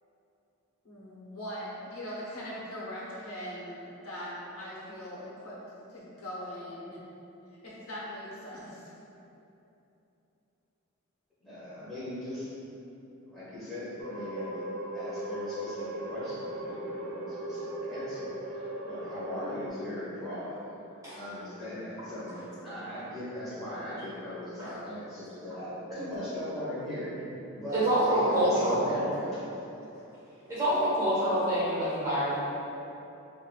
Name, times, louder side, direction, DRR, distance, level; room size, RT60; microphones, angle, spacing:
voice 1, 0.8-5.6 5.9-7.0 7.6-8.9, equal, 80° left, -7 dB, 0.9 m, -40 dB
voice 2, 11.4-12.5 13.2-14.7 14.9-20.6 21.1-27.1 27.5-29.4, left 1 dB, ahead, -13 dB, 1.3 m, -39 dB
sound 1, 14.0-19.7, right 1 dB, 70° right, 0.4 m, -38 dB
voice 3, 27.7-29.3 30.5-32.3, right 1 dB, 15° right, -13 dB, 1.4 m, -26 dB
5.1 x 2.5 x 2.4 m, 3.0 s
head